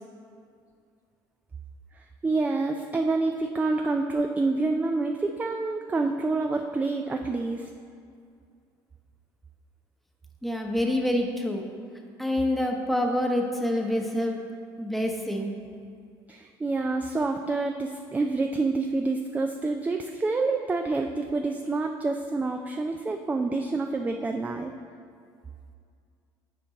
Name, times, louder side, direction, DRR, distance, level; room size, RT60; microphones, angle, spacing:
voice 1, 2.2-7.7 16.3-24.7, right 3 dB, 15° right, 4 dB, 0.3 m, -27 dB
voice 2, 10.4-11.7 12.2-14.4 14.8-15.5, left 1 dB, ahead, 1 dB, 0.9 m, -26 dB
8.1 x 4.5 x 3.9 m, 2.3 s
supercardioid pair, 100°, 10 cm